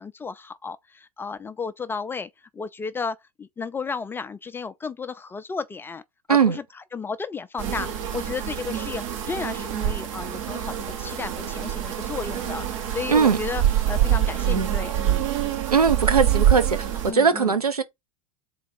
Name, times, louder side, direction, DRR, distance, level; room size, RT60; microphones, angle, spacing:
voice 1, 0.0-6.0 6.3-6.6 6.9-15.3 17.0-17.5, left 5 dB, 10° left, 0.3 m, -33 dB
sound 1, 7.6-17.1, right 11 dB, 55° right, 0.9 m, -25 dB
voice 2, 15.7-16.8 17.0-17.8, right 6 dB, 85° right, 0.7 m, -19 dB
3.8 x 2.4 x 4.6 m
figure-of-eight pair, 85°, 19 cm